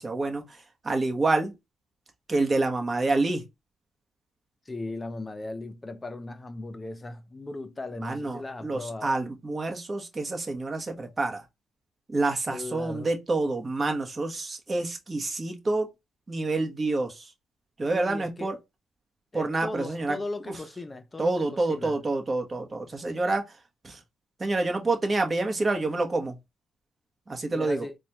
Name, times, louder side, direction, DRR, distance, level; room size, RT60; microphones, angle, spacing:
voice 1, 0.0-1.5 2.3-3.4 8.0-11.4 12.1-15.9 16.3-17.3 17.8-18.6 19.3-20.2 20.5-20.6 21.2-23.6 23.8-24.0 24.4-26.4 27.3-27.9, right 2 dB, 30° right, 1.1 m, -28 dB
voice 2, 4.7-9.1 12.5-13.1 17.9-18.5 19.3-21.4 21.7-22.0 27.5-28.0, left 2 dB, 20° left, 0.6 m, -37 dB
4.1 x 2.3 x 3.0 m
cardioid pair, 90°, 0 cm